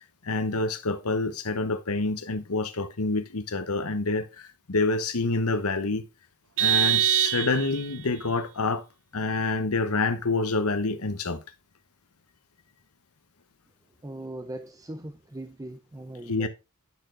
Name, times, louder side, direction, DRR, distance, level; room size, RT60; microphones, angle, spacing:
voice 1, 0.2-6.0 6.6-8.8 9.1-11.4 16.3-16.5, left 3 dB, 85° left, 1.0 m, -27 dB
Vehicle horn car horn honking, 6.6-8.0, right 12 dB, 65° right, 0.6 m, -24 dB
voice 2, 14.0-16.5, right 1 dB, 15° right, 0.5 m, -39 dB
9.0 x 6.3 x 3.9 m
head